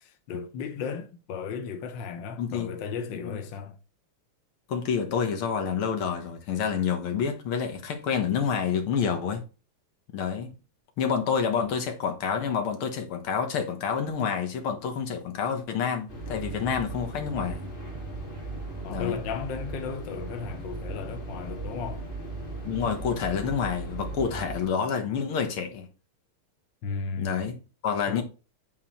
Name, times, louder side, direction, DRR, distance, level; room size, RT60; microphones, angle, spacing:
voice 1, 0.0-3.7 18.8-22.0 26.8-27.5 28.1-28.2, left 6 dB, 65° left, 1.5 m, -35 dB
voice 2, 2.4-2.7 3.2-3.4 4.7-9.4 10.1-10.5 11.0-17.7 18.9-19.2 22.6-25.9 27.2-28.2, left 6 dB, 85° left, 2.2 m, -28 dB
sound 1, 16.1-24.7, right 2 dB, 25° left, 2.0 m, -37 dB
8.2 x 3.8 x 4.3 m
omnidirectional pair, 2.3 m